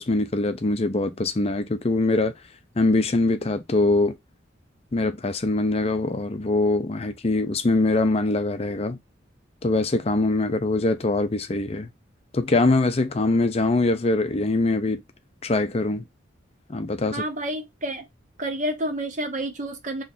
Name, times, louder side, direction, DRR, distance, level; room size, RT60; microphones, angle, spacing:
voice 1, 0.0-2.3 2.8-4.2 4.9-9.0 9.6-11.9 12.3-15.0 15.4-16.0 16.7-17.2, left 2 dB, 30° left, 0.5 m, -23 dB
voice 2, 17.1-18.0 18.4-20.0, right 1 dB, 40° right, 0.9 m, -29 dB
3.8 x 3.1 x 2.5 m
head